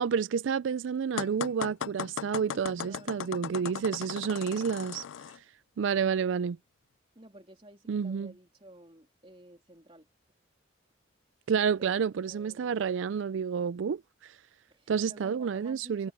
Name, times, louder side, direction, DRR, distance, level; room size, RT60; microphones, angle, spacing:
voice 1, 0.0-5.0 5.8-6.6 7.9-8.3 11.5-14.3 14.9-16.1, right 6 dB, 75° right, 0.4 m, -29 dB
sound 1, 1.2-5.4, left 8 dB, 75° left, 0.3 m, -37 dB
voice 2, 2.7-3.5 7.1-10.1 11.6-13.0 14.7-16.1, right 1 dB, 30° right, 3.3 m, -53 dB
head